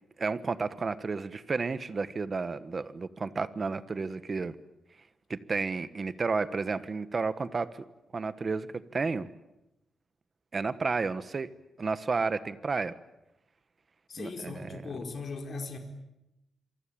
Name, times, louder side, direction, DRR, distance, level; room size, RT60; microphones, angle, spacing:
voice 1, 0.2-4.6 5.3-7.8 8.1-8.7 8.9-9.3 10.5-11.5 11.8-12.9 14.2-14.8, right 4 dB, 35° right, 13 dB, 1.3 m, -31 dB
voice 2, 14.1-15.8, left 4 dB, 50° left, 4 dB, 4.6 m, -38 dB
27.5 x 24.0 x 8.8 m, 0.91 s
wide cardioid pair, 130°, 0 cm